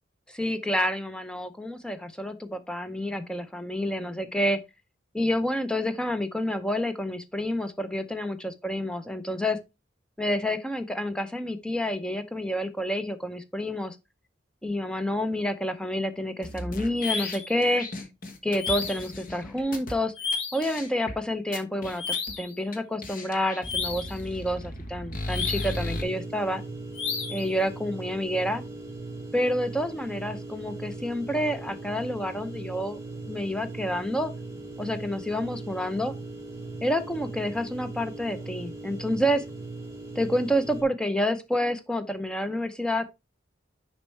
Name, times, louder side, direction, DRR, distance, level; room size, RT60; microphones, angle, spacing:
voice 1, 0.3-4.6 5.1-9.6 10.2-14.0 14.6-17.9 18.4-20.1 20.5-22.0 22.4-26.6 27.3-28.6 29.3-33.0 33.3-34.3 34.8-36.1 36.8-39.4 40.2-43.0, equal, 5° left, 0.5 m, -28 dB
sound 1, 16.4-19.9 20.3-20.4 20.6-21.1 21.5-22.3 22.7-22.8 23.0-26.0, left 1 dB, 45° left, 1.1 m, -36 dB
sound 2, 17.0-17.5 18.6-19.1 20.2-20.7 22.0-22.5 23.6-24.2 25.3-25.9 26.9-27.5, left 5 dB, 70° left, 1.7 m, -32 dB
sound 3, 25.7-40.8, right 2 dB, 15° right, 1.7 m, -39 dB
6.6 x 5.2 x 3.2 m
head